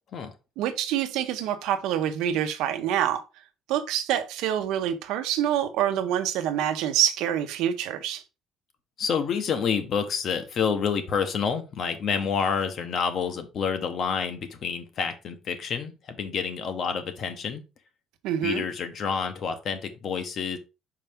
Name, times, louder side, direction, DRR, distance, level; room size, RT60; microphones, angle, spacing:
voice 1, 0.6-3.2 3.7-8.2 18.2-18.6, right 10 dB, 80° right, 0.9 m, -26 dB
voice 2, 9.0-17.6 18.4-20.6, left 6 dB, 40° left, 1.0 m, -28 dB
5.7 x 4.8 x 3.5 m
cardioid pair, 170°, 0 cm